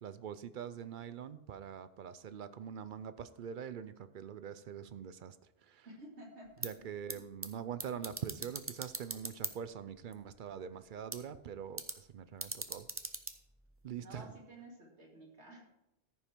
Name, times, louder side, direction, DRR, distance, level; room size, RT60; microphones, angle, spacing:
voice 1, 0.0-5.4 5.6-5.9 6.6-12.9 13.8-14.3, right 8 dB, 55° right, 13 dB, 0.6 m, -44 dB
voice 2, 5.8-6.7 7.1-7.2 14.0-15.6, right 1 dB, 85° right, -2 dB, 2.7 m, -52 dB
sound 1, 6.4-14.3, right 2 dB, 15° right, 0.5 m, -45 dB
14.0 x 5.6 x 4.5 m, 0.89 s
omnidirectional pair, 1.1 m